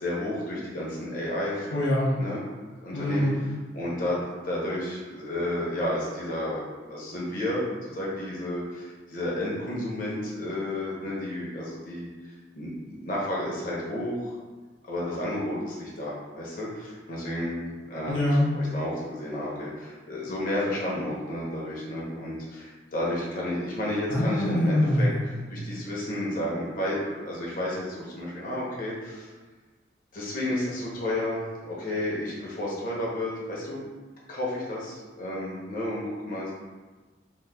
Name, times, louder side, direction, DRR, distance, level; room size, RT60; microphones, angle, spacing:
voice 1, 0.0-1.7 2.2-2.4 2.8-14.4 14.9-18.2 18.5-29.3 30.1-33.8 34.3-36.5, left 1 dB, 50° left, -5 dB, 0.7 m, -32 dB
voice 2, 1.7-2.1 2.9-3.4 18.1-18.4 24.1-25.3, left 1 dB, 90° left, -5 dB, 0.6 m, -24 dB
2.9 x 2.1 x 3.4 m, 1.3 s
head